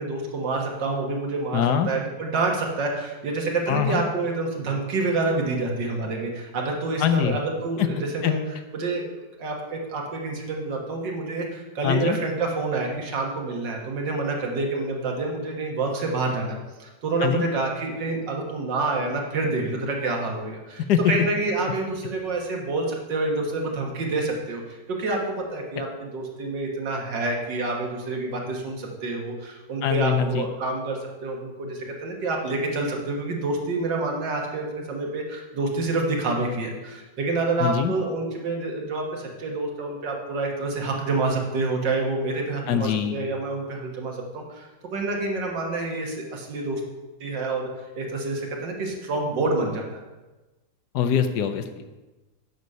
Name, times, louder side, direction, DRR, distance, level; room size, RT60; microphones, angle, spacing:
voice 1, 0.0-8.4 8.7-9.0 9.4-46.8 47.2-47.7 48.0-50.0, right 3 dB, 90° right, 1 dB, 2.1 m, -28 dB
voice 2, 1.5-1.9 3.7-4.0 7.0-7.4 7.8-7.9 8.2-8.3 11.8-12.2 17.2-17.4 20.9-21.1 29.8-30.5 37.6-37.9 42.7-43.2 50.9-51.9, left 8 dB, 70° left, 9 dB, 1.2 m, -23 dB
9.3 x 6.4 x 5.4 m, 1.2 s
omnidirectional pair, 1.9 m